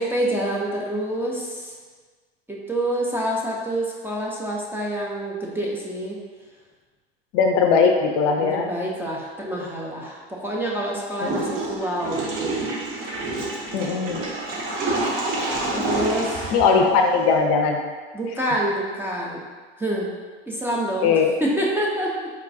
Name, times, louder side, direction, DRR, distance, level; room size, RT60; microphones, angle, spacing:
voice 1, 0.0-1.7 2.5-6.2 8.4-12.6 15.7-16.5 18.1-19.4 19.8-20.1 20.5-22.1, right 1 dB, 5° right, -4 dB, 0.4 m, -27 dB
voice 2, 7.3-8.7 11.3-11.4 13.7-14.2 16.5-17.8 21.0-21.3, left 5 dB, 50° left, 3 dB, 0.5 m, -19 dB
Water / Toilet flush, 11.2-17.4, right 2 dB, 40° right, 0.7 m, -28 dB
4.1 x 2.2 x 2.6 m, 1.5 s
hypercardioid pair, 85°, 32 cm